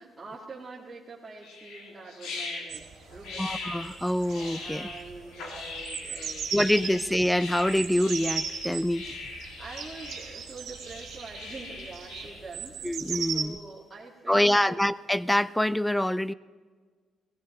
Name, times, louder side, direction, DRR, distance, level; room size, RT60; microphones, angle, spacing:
voice 1, 0.0-2.8 3.1-3.5 4.6-6.5 9.6-12.9 13.3-14.8, right 3 dB, 20° right, -7 dB, 2.4 m, -45 dB
sound 1, 1.4-12.4, left 3 dB, 90° left, 2.5 m, -41 dB
sound 2, 2.7-13.5, right 7 dB, 75° right, 2.2 m, -37 dB
voice 2, 3.4-4.9 6.5-9.1 12.8-13.6 14.3-16.3, left 1 dB, 5° left, 19 dB, 0.4 m, -25 dB
17.0 x 16.0 x 4.3 m, 1.5 s
cardioid pair, 90°, 0 cm